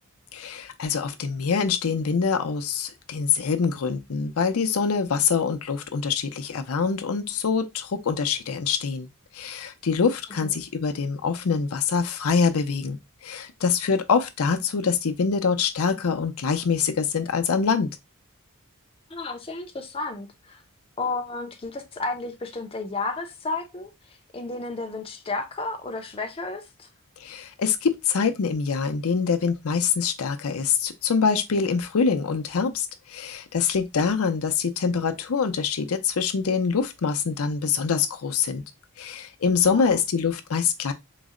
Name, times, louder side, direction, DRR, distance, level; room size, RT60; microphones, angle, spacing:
voice 1, 0.3-9.1 9.3-13.0 13.2-17.9 27.2-38.6 39.0-40.9, left 5 dB, 75° left, 0.5 m, -25 dB
voice 2, 19.1-20.6 21.0-26.9 39.7-40.0, left 3 dB, 25° left, 0.5 m, -32 dB
3.9 x 2.1 x 3.6 m
head